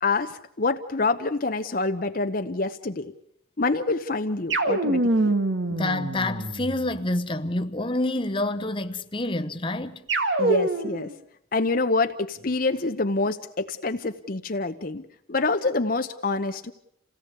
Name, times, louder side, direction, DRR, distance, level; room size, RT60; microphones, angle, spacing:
voice 1, 0.0-3.1 3.6-5.4 10.4-11.1 11.5-15.0 15.3-16.7, left 3 dB, 45° left, 0.9 m, -26 dB
sound 1, 4.5-7.0 10.1-11.1, right 2 dB, 70° right, 2.0 m, -25 dB
voice 2, 5.7-10.0, left 2 dB, 25° left, 1.0 m, -28 dB
28.0 x 17.5 x 8.2 m
head